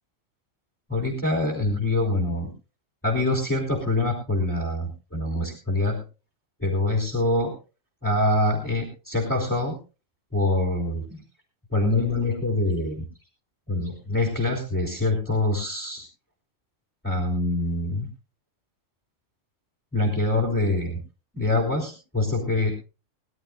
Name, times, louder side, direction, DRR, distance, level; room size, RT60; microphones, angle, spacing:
voice 1, 0.9-2.5 3.0-6.0 6.6-7.6 8.0-9.8 10.3-11.2 11.7-13.1 13.7-16.0 17.0-18.1 19.9-21.0 21.3-22.7, left 2 dB, 10° left, 0 dB, 3.8 m, -25 dB
22.0 x 12.5 x 2.5 m, 0.31 s
omnidirectional pair, 1.3 m